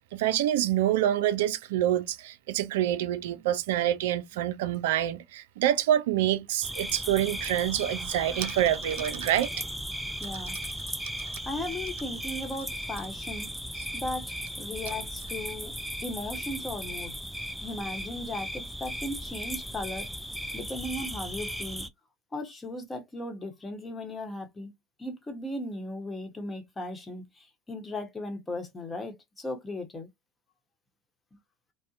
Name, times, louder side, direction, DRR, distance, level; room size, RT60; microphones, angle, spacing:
voice 1, 0.1-9.5 10.3-10.4, right 12 dB, 85° right, 0.3 m, -26 dB
sound 1, 6.6-21.9, equal, ahead, 0.4 m, -36 dB
voice 2, 10.2-10.6 11.4-13.5 13.9-15.8 16.0-17.2 17.6-20.1 20.5-21.9 22.3-24.7 25.0-30.1, left 1 dB, 20° left, 1.0 m, -37 dB
2.6 x 2.1 x 2.4 m
supercardioid pair, 90°, 0 cm